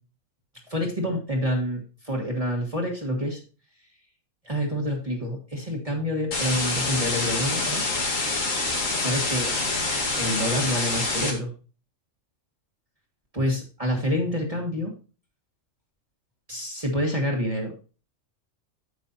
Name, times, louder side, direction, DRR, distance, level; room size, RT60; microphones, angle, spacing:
voice 1, 0.7-3.4 4.4-7.8 9.0-9.5 10.2-11.5 13.3-14.9 16.5-17.8, equal, 30° right, -1 dB, 1.6 m, -27 dB
sound 1, 6.3-11.3, left 3 dB, 85° left, 2.3 m, -26 dB
9.7 x 7.4 x 2.7 m, 0.35 s
omnidirectional pair, 1.3 m